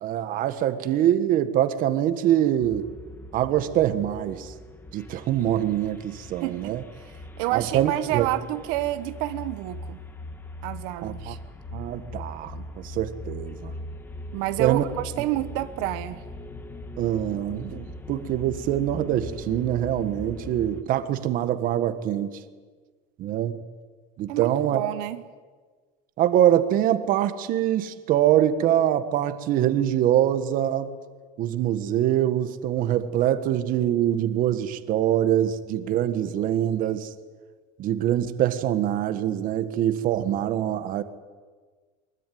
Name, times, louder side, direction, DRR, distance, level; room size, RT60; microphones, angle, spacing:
voice 1, 0.0-2.9 3.3-4.5 4.9-6.8 7.5-8.3 11.0-11.3 11.7-13.7 14.6-14.9 17.0-22.4 23.2-23.6 24.2-24.8 26.2-30.9 31.4-37.1 37.8-41.0, right 11 dB, 45° right, 1.5 m, -24 dB
sound 1, 2.6-20.8, left 1 dB, 10° left, 1.5 m, -40 dB
voice 2, 6.4-10.0 10.6-11.4 14.3-16.2 24.3-25.2, right 16 dB, 80° right, 1.2 m, -29 dB
23.5 x 22.0 x 9.3 m
cardioid pair, 165°, 19 cm